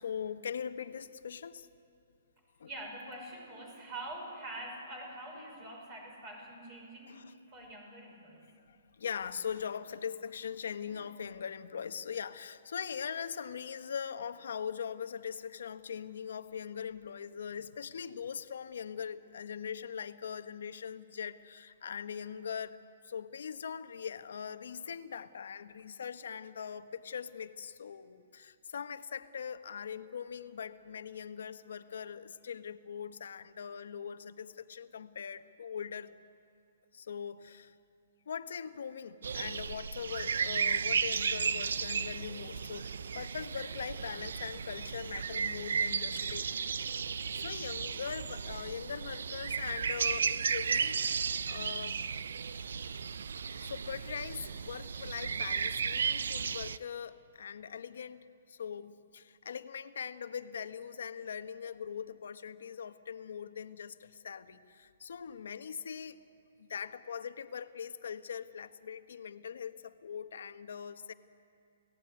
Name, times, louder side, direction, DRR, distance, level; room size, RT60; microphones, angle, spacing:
voice 1, 0.0-1.7 2.6-2.7 7.1-7.3 8.7-36.1 36.9-37.7 38.3-42.9 43.1-46.5 47.3-52.0 53.6-66.2 66.6-71.1, left 7 dB, 75° left, 9 dB, 1.3 m, -41 dB
voice 2, 2.6-8.4, right 1 dB, 30° right, 1 dB, 5.9 m, -45 dB
sound 1, 39.2-56.8, right 6 dB, 80° right, 0.6 m, -34 dB
29.5 x 17.5 x 9.6 m, 2.5 s
hypercardioid pair, 165°, 0 cm